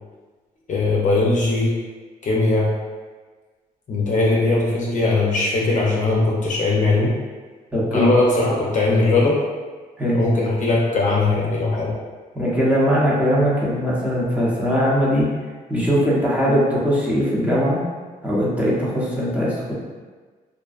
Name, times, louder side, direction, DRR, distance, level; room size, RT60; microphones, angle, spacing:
voice 1, 0.7-1.7 2.2-2.7 3.9-7.1 7.9-9.4 10.1-11.9, left 2 dB, 50° left, -4 dB, 0.5 m, -19 dB
voice 2, 7.7-8.1 10.0-10.2 12.3-15.3 15.7-17.8 18.2-19.7, equal, 10° right, -7 dB, 0.8 m, -20 dB
2.5 x 2.2 x 2.4 m, 1.4 s
cardioid pair, 75°, 17 cm